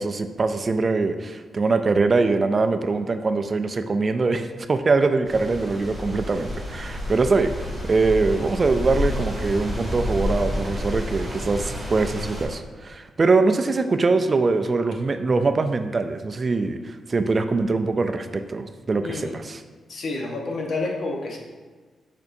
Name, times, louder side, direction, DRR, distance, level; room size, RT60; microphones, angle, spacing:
voice 1, 0.0-19.6, right 3 dB, 30° right, 8 dB, 0.3 m, -23 dB
sound 1, 5.2-12.5, left 1 dB, ahead, 1.8 m, -30 dB
voice 2, 19.0-19.4 19.9-21.4, left 3 dB, 60° left, 0 dB, 1.0 m, -29 dB
7.0 x 5.2 x 2.6 m, 1.4 s
cardioid pair, 125°, 0 cm